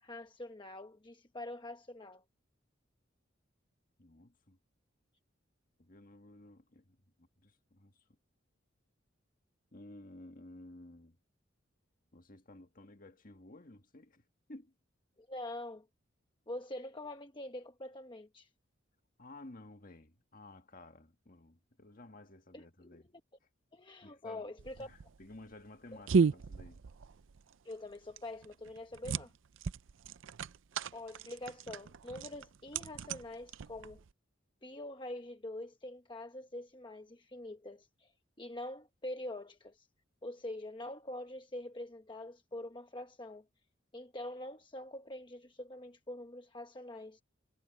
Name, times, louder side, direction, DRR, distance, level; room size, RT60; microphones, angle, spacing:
voice 1, 0.0-2.2 15.3-15.8 16.5-18.5 22.5-23.0 23.7-24.9 25.9-26.0 27.6-29.3 30.9-34.0 34.6-38.1 38.4-39.9 40.2-43.4 43.9-47.2, left 1 dB, 25° left, 1.0 m, -45 dB
voice 2, 4.0-4.6 5.8-7.9 9.7-11.2 12.1-14.2 14.5-14.7 19.2-23.1 24.0-24.5 24.8-26.8, left 2 dB, 45° left, 1.8 m, -54 dB
sound 1, 24.6-34.1, right 5 dB, 80° right, 0.5 m, -35 dB
head